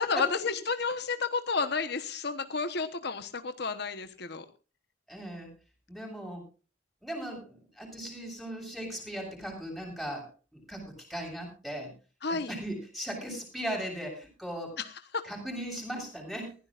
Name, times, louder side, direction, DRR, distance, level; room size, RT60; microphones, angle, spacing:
voice 1, 0.0-4.5 12.2-12.5 14.8-15.3, left 4 dB, 60° left, 9 dB, 1.1 m, -31 dB
voice 2, 5.1-5.5 5.9-6.4 7.0-11.9 12.3-14.8 15.2-16.5, right 1 dB, ahead, 1 dB, 7.3 m, -38 dB
20.5 x 16.0 x 2.5 m, 0.34 s
head